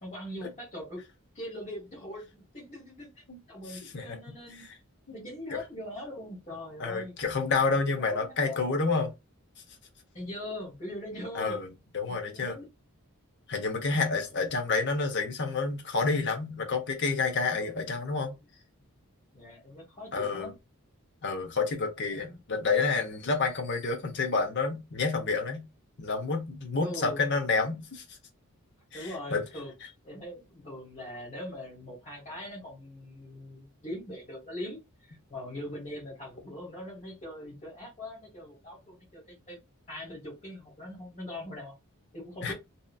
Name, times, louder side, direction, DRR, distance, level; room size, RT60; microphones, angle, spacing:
voice 1, 0.0-1.0 1.3-4.6 5.1-7.2 7.9-8.6 10.1-11.6 12.1-12.7 14.1-14.6 17.5-17.9 19.3-20.5 22.1-22.4 26.8-27.4 28.9-29.7 30.0-39.6 39.9-41.7 42.1-42.5, left 1 dB, 35° left, 1.4 m, -41 dB
voice 2, 3.7-4.4 6.8-9.1 11.3-11.7 11.9-12.6 13.5-18.3 20.1-20.5 21.2-25.6 26.0-28.0 28.9-29.4 42.4-42.5, left 4 dB, 55° left, 0.8 m, -29 dB
2.8 x 2.4 x 2.3 m
head